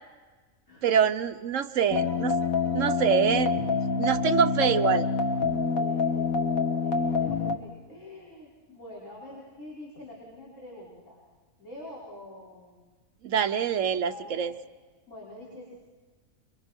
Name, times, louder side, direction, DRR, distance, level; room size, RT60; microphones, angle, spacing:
voice 1, 0.8-2.4 2.7-3.6 4.0-5.0 13.2-14.5, right 8 dB, 70° right, 8 dB, 1.3 m, -25 dB
sound 1, 1.9-7.6, left 4 dB, 90° left, 1.9 m, -26 dB
voice 2, 4.3-5.0 5.7-11.2 11.6-12.9 14.1-14.4 15.1-15.8, left 1 dB, 65° left, -7 dB, 5.9 m, -45 dB
29.5 x 23.5 x 4.5 m, 1.4 s
omnidirectional pair, 1.4 m